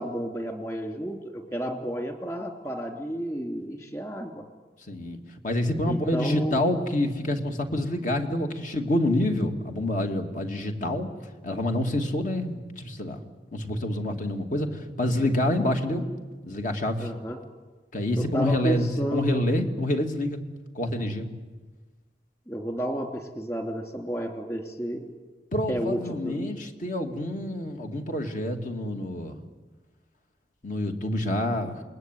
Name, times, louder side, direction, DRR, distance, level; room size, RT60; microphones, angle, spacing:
voice 1, 0.0-4.4 5.8-6.6 17.0-17.4 18.2-19.4 22.5-25.1 25.7-26.5, equal, 15° left, 4 dB, 3.0 m, -31 dB
voice 2, 4.9-5.2 5.4-11.1 11.4-13.2 13.5-16.1 16.4-17.1 17.9-20.4 20.7-21.3 25.5-29.4 30.6-31.8, left 1 dB, 50° left, 4 dB, 2.7 m, -27 dB
28.0 x 21.0 x 9.5 m, 1.3 s
head